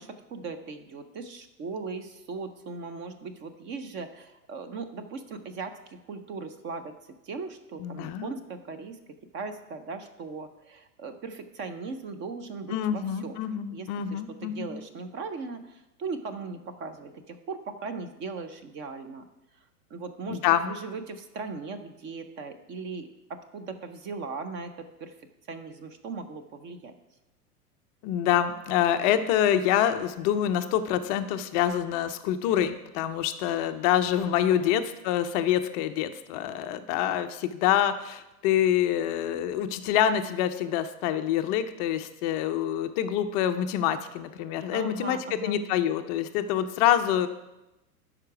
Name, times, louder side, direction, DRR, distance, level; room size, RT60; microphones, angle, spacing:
voice 1, 0.0-6.9 7.2-9.0 9.3-13.4 13.7-19.2 19.9-25.2 25.5-26.9 34.5-34.8 44.7-45.6, right 4 dB, 25° right, 9 dB, 0.6 m, -38 dB
voice 2, 7.8-8.3 12.7-14.7 20.3-20.7 28.0-47.3, left 10 dB, 25° left, 9 dB, 0.4 m, -26 dB
12.0 x 4.9 x 4.7 m, 0.95 s
figure-of-eight pair, 100°, 47 cm